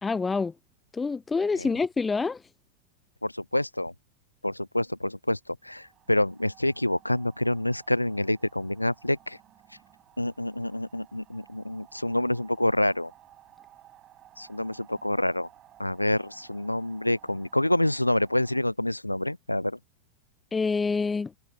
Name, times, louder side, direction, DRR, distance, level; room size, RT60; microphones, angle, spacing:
voice 1, 0.0-0.5 0.9-2.4 20.5-21.3, left 4 dB, 15° left, 0.5 m, -26 dB
voice 2, 3.2-3.9 4.4-9.4 10.2-13.1 14.4-15.5 15.8-19.8, left 1 dB, 85° left, 0.4 m, -27 dB
sound 1, 5.6-18.6, right 12 dB, 30° right, 7.3 m, -56 dB
figure-of-eight pair, 90°, 0 cm